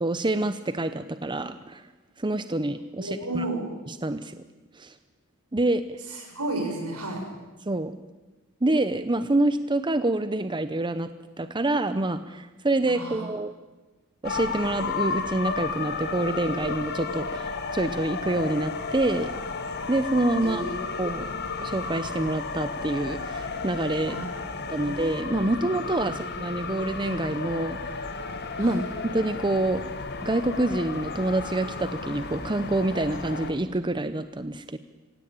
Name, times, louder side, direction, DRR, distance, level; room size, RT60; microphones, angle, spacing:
voice 1, 0.0-1.8 2.2-3.4 3.9-4.4 4.8-4.9 5.5-5.8 7.7-7.9 8.6-11.1 11.4-13.5 14.2-19.3 19.9-20.6 21.0-21.3 21.6-24.2 24.7-27.8 28.6-28.8 29.1-29.8 30.2-34.8, right 2 dB, 20° right, 11 dB, 0.8 m, -27 dB
voice 2, 3.0-3.6 6.1-7.2 12.9-13.3 20.4-21.0 24.0-25.0 26.1-26.2 28.6-28.8, right 2 dB, 75° right, 2 dB, 7.0 m, -33 dB
sound 1, 14.2-33.5, left 4 dB, 50° left, 2.1 m, -33 dB
26.0 x 17.0 x 8.9 m, 1.2 s
head